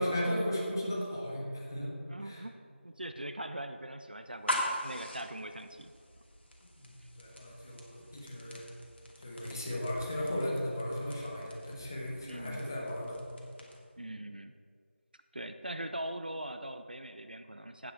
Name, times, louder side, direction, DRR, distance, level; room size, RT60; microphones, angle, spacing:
voice 1, 0.0-2.4 6.8-8.6 9.2-13.2, equal, 15° left, -4 dB, 1.3 m, -36 dB
voice 2, 2.1-2.6 2.8-5.9 7.0-7.1 9.6-9.8 12.3-12.7 14.0-14.5 15.3-17.9, right 1 dB, 45° right, 8 dB, 0.5 m, -41 dB
sound 1, 4.2-14.0, left 1 dB, 60° left, 2.4 m, -42 dB
16.5 x 5.7 x 4.7 m, 2.2 s
figure-of-eight pair, 170°, 7 cm